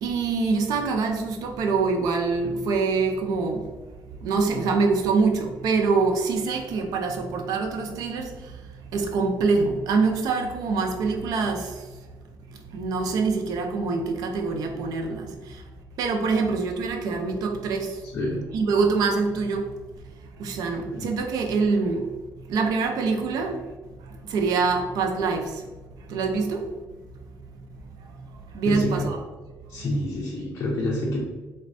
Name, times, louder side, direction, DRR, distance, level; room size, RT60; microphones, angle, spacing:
voice 1, 0.0-3.7 4.2-8.5 8.9-11.8 12.7-15.6 16.0-18.0 18.5-19.7 20.4-22.1 22.5-23.7 24.3-25.6 26.1-26.7 28.5-29.2, right 4 dB, 80° right, 0.4 m, -25 dB
voice 2, 18.1-18.5 20.9-21.1 28.7-29.1 29.7-31.3, left 1 dB, 40° left, 0.5 m, -28 dB
4.1 x 2.1 x 2.5 m
cardioid pair, 160°, 6 cm